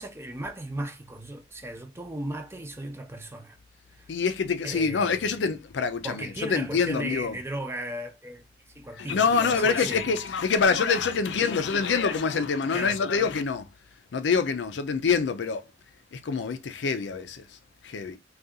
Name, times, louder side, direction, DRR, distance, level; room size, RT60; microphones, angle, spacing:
voice 1, 0.0-3.6 3.9-4.1 4.6-5.3 6.0-8.5 8.7-10.0 12.7-13.0, right 1 dB, 15° right, 0.6 m, -36 dB
voice 2, 4.1-7.4 9.0-13.7 14.1-15.6 16.1-17.6 17.8-18.2, left 5 dB, 75° left, 0.4 m, -26 dB
2.7 x 2.3 x 3.6 m
head